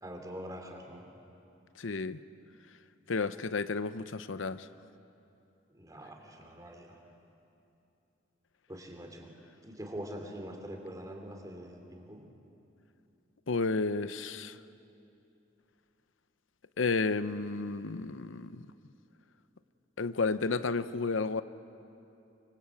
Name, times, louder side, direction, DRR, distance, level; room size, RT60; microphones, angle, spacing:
voice 1, 0.0-1.1 5.7-7.0 8.7-9.3 9.6-12.3, equal, 20° right, 3 dB, 3.1 m, -44 dB
voice 2, 1.8-2.2 3.1-4.7 13.5-14.6 16.8-18.7 20.0-21.4, left 4 dB, 85° left, 13 dB, 0.7 m, -32 dB
25.0 x 23.5 x 8.5 m, 2.7 s
head